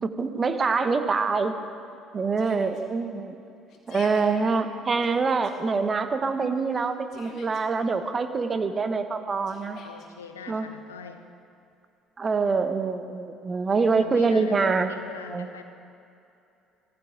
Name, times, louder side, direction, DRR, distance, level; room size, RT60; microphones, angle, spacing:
voice 1, 0.0-1.5 2.1-3.4 3.9-9.8 10.5-10.7 12.2-14.9 15.3-15.5, right 4 dB, 35° right, 8 dB, 1.1 m, -25 dB
Yell, 2.4-2.8 3.7-4.3 5.0-5.5 6.7-7.6 9.5-10.1, left 4 dB, 55° left, 2.1 m, -45 dB
voice 2, 9.8-11.2 14.0-15.6, left 5 dB, 85° left, 7 dB, 0.8 m, -42 dB
16.5 x 15.0 x 3.9 m, 2.6 s
hypercardioid pair, 55°, 0 cm